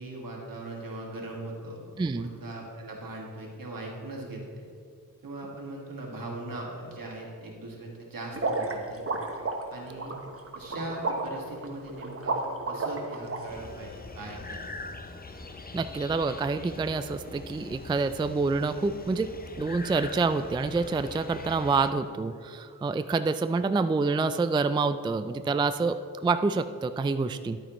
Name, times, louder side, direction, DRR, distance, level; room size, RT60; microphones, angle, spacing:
voice 1, 0.0-4.4 5.2-9.3 9.7-10.1 10.5-14.9, right 2 dB, 70° right, -1 dB, 1.9 m, -40 dB
sound 1, 8.3-13.4, right 3 dB, 40° right, 1.0 m, -31 dB
sound 2, 13.5-21.9, left 3 dB, 25° left, 0.6 m, -42 dB
voice 2, 15.7-27.6, right 4 dB, 15° right, 10 dB, 0.3 m, -27 dB
11.0 x 8.7 x 3.1 m, 2.2 s
cardioid pair, 50°, 35 cm